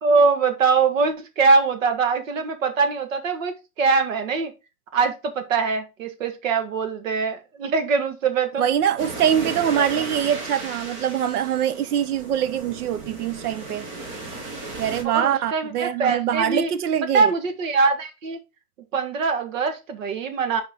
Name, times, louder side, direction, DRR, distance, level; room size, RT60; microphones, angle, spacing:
voice 1, 0.0-4.5 4.9-8.6 9.4-9.8 13.0-13.2 15.0-16.7 17.1-18.4 18.9-20.6, right 4 dB, 55° right, 1.6 m, -22 dB
voice 2, 8.6-13.8 14.8-17.3, right 9 dB, 75° right, 0.9 m, -23 dB
sound 1, 9.0-15.0, right 2 dB, 20° right, 1.1 m, -35 dB
5.7 x 4.9 x 3.6 m
supercardioid pair, 175°, 46 cm